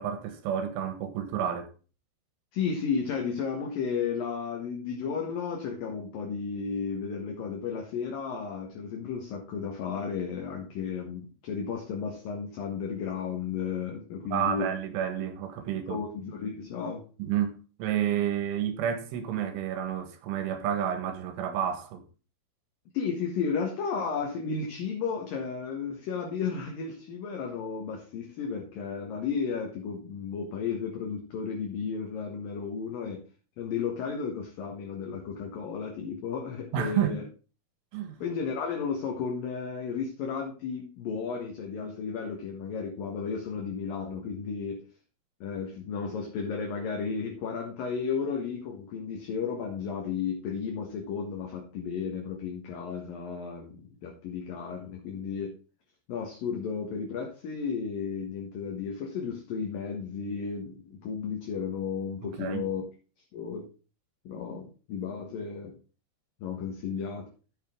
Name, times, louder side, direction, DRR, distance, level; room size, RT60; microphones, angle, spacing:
voice 1, 0.0-1.7 14.3-16.0 17.2-22.0 36.7-37.2 37.9-38.2 62.2-62.7, right 9 dB, 85° right, 4.0 m, -30 dB
voice 2, 2.5-14.7 15.9-17.0 22.9-33.2 33.6-37.2 38.2-44.8 45.4-55.6 56.1-62.8 63.3-63.7 64.2-65.8 66.4-67.3, left 6 dB, 60° left, 2.8 m, -33 dB
13.0 x 6.6 x 3.7 m
omnidirectional pair, 5.5 m